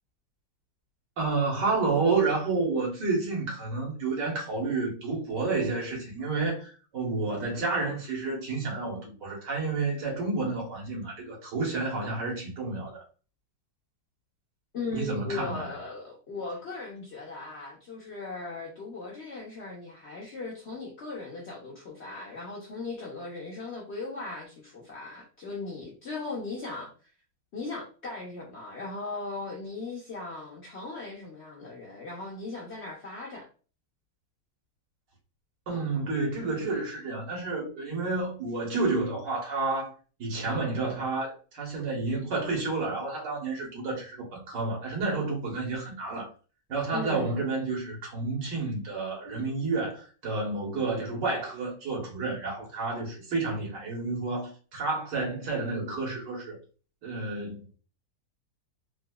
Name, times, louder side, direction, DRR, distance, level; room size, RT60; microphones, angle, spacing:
voice 1, 1.2-13.0 14.9-15.7 35.7-39.9 40.2-46.3 46.7-56.6 57.0-57.8, right 3 dB, 80° right, 1.9 m, -30 dB
voice 2, 14.7-26.9 27.5-33.5 35.7-35.9 46.9-47.4, left 3 dB, 55° left, 0.8 m, -38 dB
3.9 x 2.6 x 2.2 m
omnidirectional pair, 1.9 m